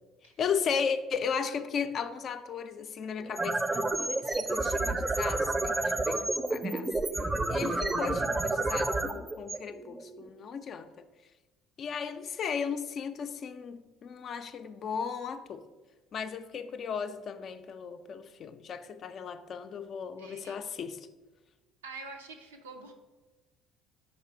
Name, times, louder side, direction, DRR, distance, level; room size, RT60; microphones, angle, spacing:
voice 1, 0.4-6.9 7.5-10.9 11.8-15.6 16.1-21.0, left 6 dB, 50° left, 0.4 m, -35 dB
sound 1, 3.2-10.3, right 2 dB, 20° right, 0.5 m, -30 dB
voice 2, 20.2-20.6 21.8-22.9, right 3 dB, 85° right, 0.6 m, -46 dB
5.1 x 4.3 x 4.4 m
hypercardioid pair, 55°, 0 cm